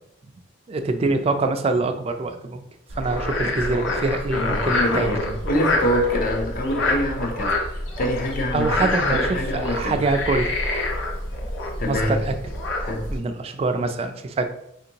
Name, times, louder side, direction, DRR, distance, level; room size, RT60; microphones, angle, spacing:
voice 1, 0.7-2.6 3.0-5.1 8.5-9.3 9.6-10.6 11.8-12.3 13.1-14.5, right 3 dB, 30° right, 7 dB, 0.3 m, -24 dB
Frog, 2.9-13.2, left 2 dB, 85° left, 0.8 m, -26 dB
voice 2, 3.7-4.0 4.3-10.0 11.8-12.2 12.8-13.1, equal, 50° left, 2 dB, 0.6 m, -26 dB
4.4 x 2.6 x 2.8 m, 0.77 s
head